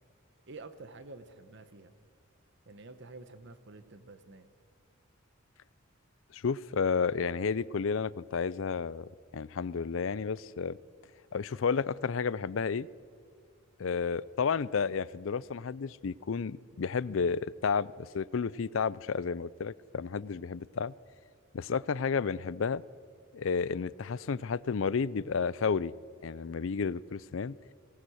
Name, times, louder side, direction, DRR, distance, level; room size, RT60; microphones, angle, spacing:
voice 1, 0.5-1.9 2.6-4.5, right 3 dB, 60° right, 11 dB, 1.1 m, -49 dB
voice 2, 6.3-10.8 11.3-12.9 13.8-20.9 21.5-22.8 23.3-25.9 26.2-27.5, left 5 dB, 70° left, 21 dB, 0.5 m, -31 dB
23.0 x 18.0 x 6.3 m, 2.1 s
head